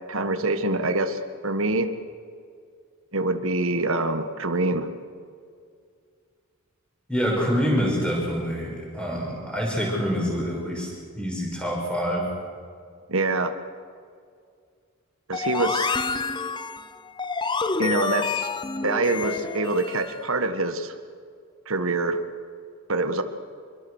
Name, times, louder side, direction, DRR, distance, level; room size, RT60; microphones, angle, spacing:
voice 1, 0.1-1.9 3.1-4.9 13.1-13.5 15.3-15.9 17.8-18.5 18.8-20.9 21.7-22.2 22.9-23.2, right 2 dB, 70° right, 8 dB, 1.5 m, -25 dB
voice 2, 7.1-10.9 11.2-12.3, equal, 5° left, -2 dB, 6.0 m, -26 dB
sound 1, 15.3-20.2, left 4 dB, 20° left, 0.6 m, -28 dB
26.0 x 23.5 x 6.5 m, 2.2 s
head